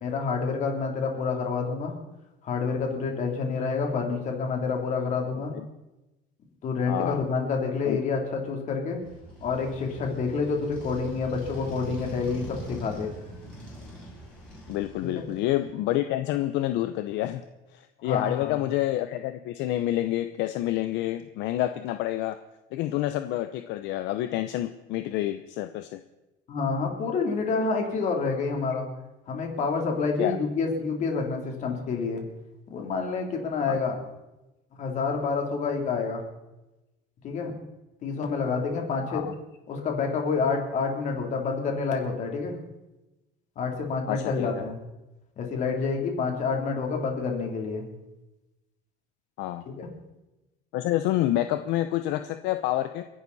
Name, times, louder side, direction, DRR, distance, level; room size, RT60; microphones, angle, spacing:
voice 1, 0.0-1.9 2.4-5.5 6.6-9.0 9.4-13.1 15.0-15.2 18.0-18.6 26.5-28.9 29.3-32.2 32.7-34.0 34.7-36.2 37.2-37.5 38.0-39.2 39.7-42.6 43.6-44.8 45.4-47.8 49.6-49.9, left 4 dB, 40° left, 2 dB, 3.3 m, -28 dB
voice 2, 6.9-7.3 7.8-8.0 14.7-17.4 17.7-22.4 22.7-26.0 30.2-30.4 33.7-33.8 39.1-39.3 44.1-44.5 49.4-49.6 50.7-53.0, left 14 dB, 65° left, 9 dB, 0.8 m, -28 dB
Motorcycle, 9.0-15.7, right 1 dB, 5° left, 6.7 m, -42 dB
29.5 x 11.0 x 4.2 m, 1.0 s
cardioid pair, 170°, 20 cm